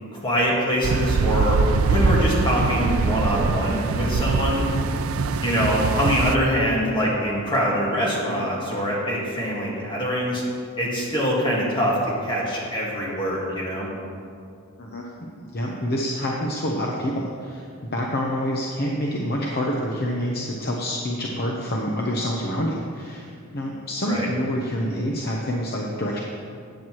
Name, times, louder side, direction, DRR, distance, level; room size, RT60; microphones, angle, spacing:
voice 1, 0.1-1.6 1.9-4.7 5.4-10.4 10.8-12.0 12.2-13.9 24.0-24.3, equal, 20° left, -5 dB, 1.7 m, -24 dB
sound 1, 0.8-6.4, right 4 dB, 75° right, 0.4 m, -23 dB
voice 2, 15.4-17.7 17.9-26.2, equal, 45° left, -2 dB, 0.9 m, -27 dB
14.0 x 9.3 x 3.1 m, 2.4 s
head